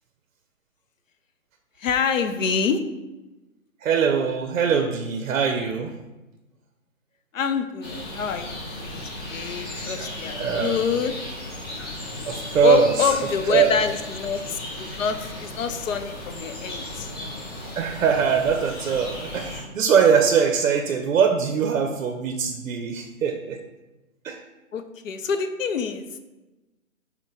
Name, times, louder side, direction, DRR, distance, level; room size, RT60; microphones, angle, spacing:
voice 1, 1.8-2.8 7.3-9.0 9.3-11.1 12.6-17.1 24.7-26.1, left 6 dB, 70° left, 8 dB, 0.5 m, -26 dB
voice 2, 3.8-5.9 9.9-10.8 12.3-13.2 13.5-13.8 17.7-23.6 24.2-24.4, right 6 dB, 70° right, 4 dB, 0.6 m, -22 dB
sound 1, 7.8-19.6, left 1 dB, 20° left, 0.5 m, -35 dB
5.7 x 2.1 x 3.3 m, 1.1 s
hypercardioid pair, 150°, 41 cm